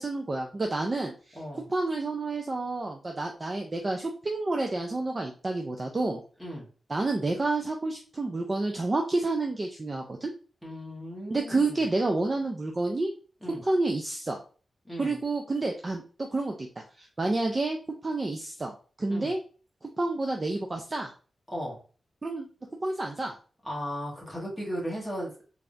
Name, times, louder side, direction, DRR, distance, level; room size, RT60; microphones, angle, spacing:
voice 1, 0.0-1.4 1.7-6.2 6.9-10.3 11.3-13.1 13.6-14.4 15.0-16.0 16.3-16.7 17.0-17.8 18.0-19.4 20.0-21.1 22.2-22.5 22.8-23.3, right 2 dB, 25° right, 2 dB, 0.4 m, -29 dB
voice 2, 1.3-1.6 6.4-6.7 10.6-11.8 13.4-13.6 14.8-15.2 19.1-19.3 21.5-21.8 23.6-25.3, equal, 5° right, -4 dB, 1.3 m, -36 dB
3.5 x 3.4 x 2.5 m, 0.39 s
wide cardioid pair, 180°, 0 cm